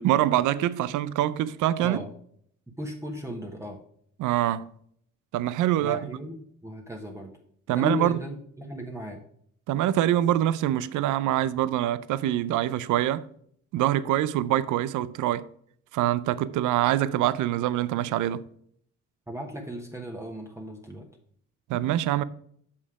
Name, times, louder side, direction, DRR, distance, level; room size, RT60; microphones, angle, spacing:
voice 1, 0.0-2.0 4.2-4.7 5.3-6.0 7.7-8.2 9.7-13.3 13.7-15.4 15.9-18.5 21.7-22.2, right 13 dB, 85° right, 0.5 m, -25 dB
voice 2, 2.8-3.8 5.8-7.4 7.7-9.2 19.3-21.1, left 1 dB, 10° right, 1.1 m, -36 dB
6.4 x 5.6 x 4.7 m
cardioid pair, 90°, 30 cm